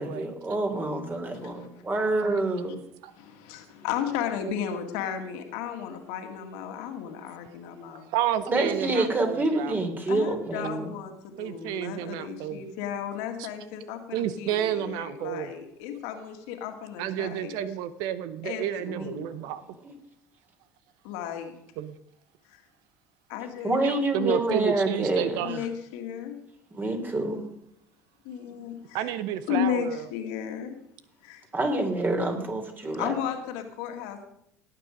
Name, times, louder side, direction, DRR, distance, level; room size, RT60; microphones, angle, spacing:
voice 1, 0.0-2.7 8.5-10.9 18.9-19.0 19.8-19.9 23.6-25.4 26.7-27.4 31.5-33.1, right 2 dB, 25° right, 4 dB, 3.3 m, -27 dB
voice 2, 1.3-1.7 3.5-8.1 10.1-17.6 18.4-19.3 21.1-21.5 23.3-23.8 25.4-26.4 28.2-29.1 29.5-30.8 31.2-31.4 33.0-34.2, left 9 dB, 65° left, 5 dB, 2.0 m, -34 dB
voice 3, 8.1-9.8 11.4-12.6 13.4-13.5 14.1-15.5 17.0-19.6 21.8-22.0 23.8-25.6 28.9-30.1, right 11 dB, 60° right, 14 dB, 0.7 m, -31 dB
18.0 x 8.9 x 5.2 m, 0.74 s
figure-of-eight pair, 60°, 8 cm